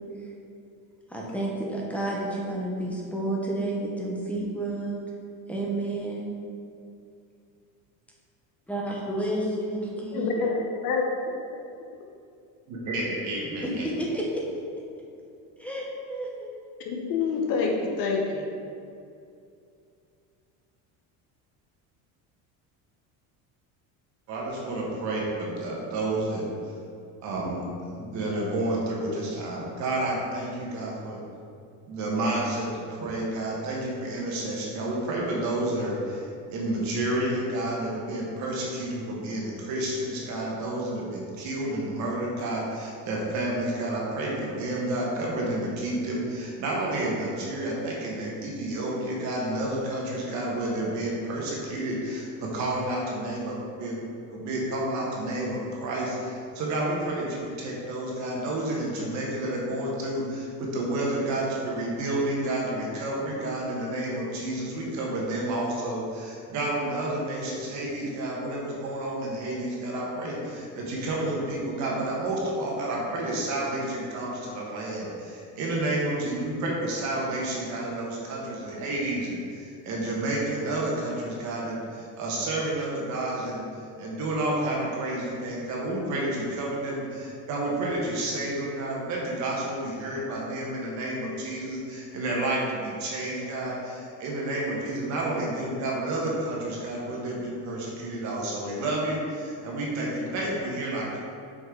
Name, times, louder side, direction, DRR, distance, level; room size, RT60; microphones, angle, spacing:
voice 1, 1.1-5.0 5.5-6.2 8.7-10.5 13.6-14.4 15.6-16.5, right 1 dB, 5° left, -4 dB, 0.8 m, -30 dB
voice 2, 10.1-11.0 16.8-18.5, left 4 dB, 60° left, 1 dB, 0.9 m, -27 dB
voice 3, 12.7-13.8 24.3-26.5 27.2-31.2 31.9-54.0 54.3-83.7 84.0-101.2, right 1 dB, 50° right, -3 dB, 1.3 m, -30 dB
6.3 x 5.4 x 3.7 m, 2.5 s
cardioid pair, 170°, 38 cm